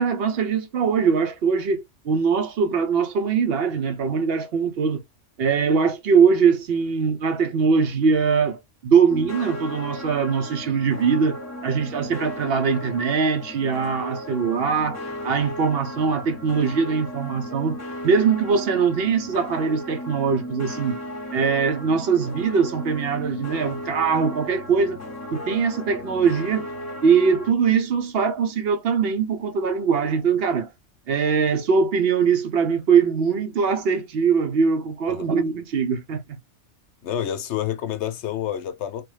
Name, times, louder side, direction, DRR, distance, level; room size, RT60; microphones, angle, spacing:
voice 1, 0.0-5.0 5.4-17.8 18.0-21.0 21.3-25.0 25.3-26.7 27.0-30.7 31.1-36.4, right 6 dB, 60° right, 0.8 m, -22 dB
sound 1, 9.1-27.5, left 1 dB, 15° left, 1.0 m, -35 dB
voice 2, 37.0-39.0, left 10 dB, 70° left, 0.9 m, -28 dB
3.3 x 2.1 x 3.1 m
omnidirectional pair, 1.3 m